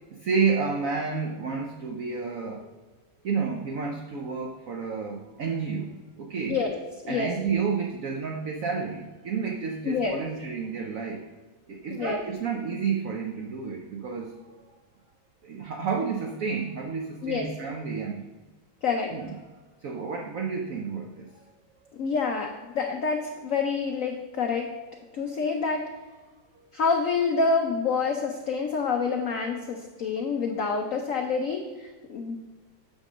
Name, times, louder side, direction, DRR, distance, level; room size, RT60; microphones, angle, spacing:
voice 1, 0.1-2.7 3.2-6.6 7.1-11.2 11.7-14.4 15.4-18.3 19.1-19.2 19.8-21.4 26.6-26.7, right 5 dB, 70° right, 1 dB, 0.8 m, -30 dB
voice 2, 9.8-10.2 11.9-12.2 17.2-17.5 18.8-19.1 21.9-24.7 25.1-25.9 26.7-32.4, left 5 dB, 85° left, 3 dB, 0.7 m, -27 dB
9.0 x 3.7 x 6.1 m, 1.3 s
omnidirectional pair, 2.2 m